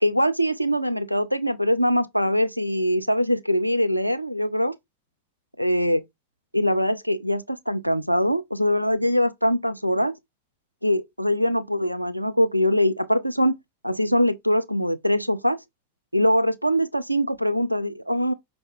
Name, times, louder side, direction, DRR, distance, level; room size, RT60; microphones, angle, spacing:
voice 1, 0.0-4.7 5.6-6.0 6.5-10.1 10.8-13.6 13.8-15.6 16.1-18.3, equal, 90° right, 0.4 m, -22 dB
5.6 x 2.3 x 2.6 m
figure-of-eight pair, 90°, 0 cm